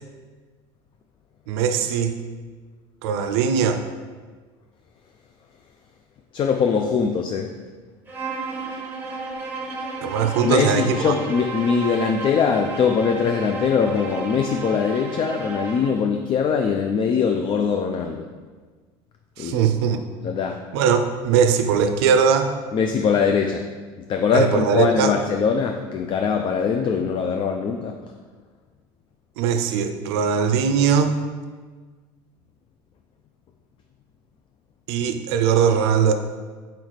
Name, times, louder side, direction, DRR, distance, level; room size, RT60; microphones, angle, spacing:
voice 1, 1.5-2.2 3.0-3.8 10.0-11.1 19.4-20.0 20.7-22.5 24.3-25.1 29.4-31.2 34.9-36.1, right 7 dB, 85° right, 8 dB, 0.4 m, -20 dB
voice 2, 6.3-7.5 10.4-18.3 19.4-19.6 20.2-20.6 22.7-23.6 24.1-27.9, left 6 dB, 40° left, 3 dB, 0.3 m, -22 dB
Bowed string instrument, 8.1-16.0, right 3 dB, 15° right, 1.0 m, -33 dB
4.3 x 3.1 x 4.0 m, 1.5 s
supercardioid pair, 90°, 14 cm